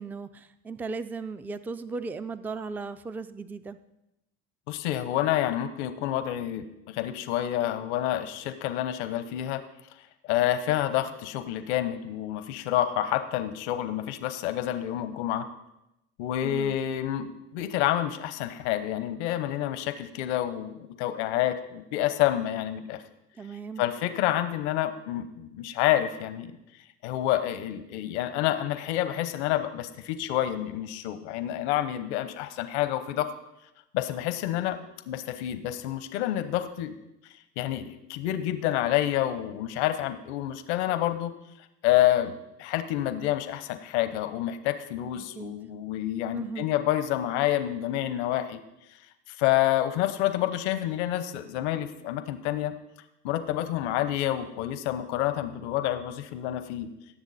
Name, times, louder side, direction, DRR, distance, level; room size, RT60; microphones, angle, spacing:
voice 1, 0.0-3.8 16.4-16.8 23.4-23.8 45.2-45.6 46.3-46.7, right 4 dB, 5° right, 13 dB, 0.3 m, -37 dB
voice 2, 4.7-9.6 10.2-15.4 16.2-23.0 23.8-26.5 27.0-33.3 33.9-34.8 35.1-36.9 37.6-41.3 41.8-48.6 49.3-52.7 53.2-56.9, left 13 dB, 90° left, 11 dB, 0.9 m, -28 dB
17.5 x 7.1 x 4.1 m, 0.88 s
supercardioid pair, 105°, 33 cm